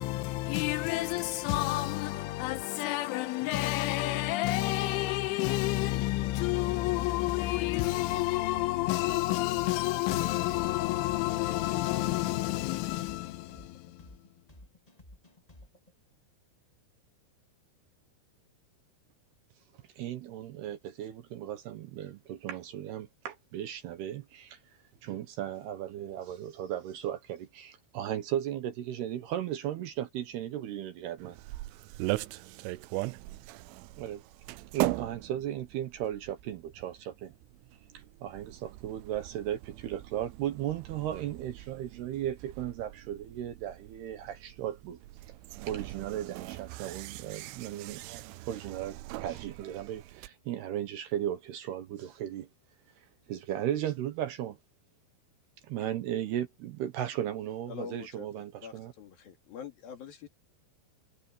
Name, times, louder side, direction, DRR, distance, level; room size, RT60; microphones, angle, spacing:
voice 1, 0.0-14.1, left 17 dB, 90° left, 3.3 m, -30 dB
sound 1, 13.2-15.9, left 1 dB, 35° left, 0.6 m, -53 dB
voice 2, 20.0-24.6 25.0-31.4 34.0-34.2 34.7-37.3 38.2-45.0 45.6-52.5 53.0-54.6 55.6-58.9, right 11 dB, 70° right, 2.8 m, -36 dB
sound 2, 31.2-50.3, right 19 dB, 90° right, 3.2 m, -40 dB
voice 3, 57.7-60.3, left 8 dB, 55° left, 3.7 m, -45 dB
omnidirectional pair, 5.6 m